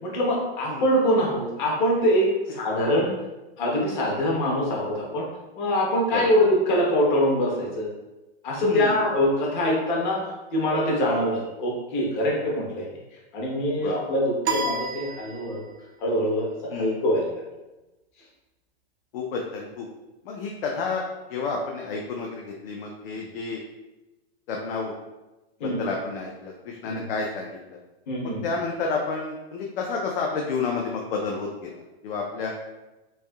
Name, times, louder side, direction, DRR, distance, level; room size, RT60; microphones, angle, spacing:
voice 1, 0.0-3.1 3.6-5.3 5.6-7.9 8.4-10.2 10.5-12.9 13.3-15.6 16.0-17.4 25.6-25.8 26.8-27.0 28.1-28.4, equal, 45° left, -3 dB, 0.9 m, -24 dB
voice 2, 8.6-9.0 13.8-14.0 16.7-17.0 19.1-19.9 20.2-21.0 21.3-23.6 24.5-24.9 25.6-27.8 28.4-31.7 32.0-32.5, left 4 dB, 65° left, 0 dB, 0.5 m, -30 dB
sound 1, 14.4-15.9, right 2 dB, 85° right, 0.6 m, -30 dB
3.3 x 2.6 x 2.2 m, 1.1 s
supercardioid pair, 160°, 32 cm